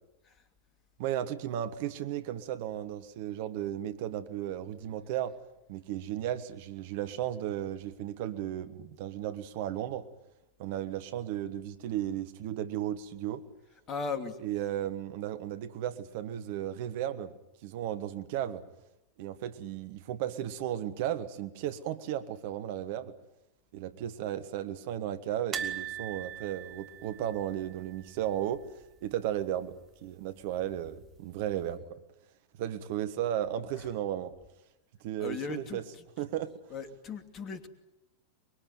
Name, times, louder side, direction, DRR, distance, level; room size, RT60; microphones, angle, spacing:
voice 1, 1.0-5.4 5.7-10.1 10.6-13.4 14.4-17.3 17.6-18.6 19.2-23.1 23.7-28.7 29.0-32.0 32.6-34.3 35.0-35.8 36.2-36.5, right 11 dB, 50° right, 1.4 m, -35 dB
voice 2, 13.9-14.4 33.8-33.9 35.2-36.0 36.7-37.7, left 5 dB, 30° left, 2.8 m, -38 dB
sound 1, 25.5-28.6 28.8-29.0 29.3-29.4 30.6-31.2 31.7-31.8, right 9 dB, 30° right, 2.7 m, -40 dB
24.5 x 23.0 x 9.4 m
figure-of-eight pair, 90°, 0 cm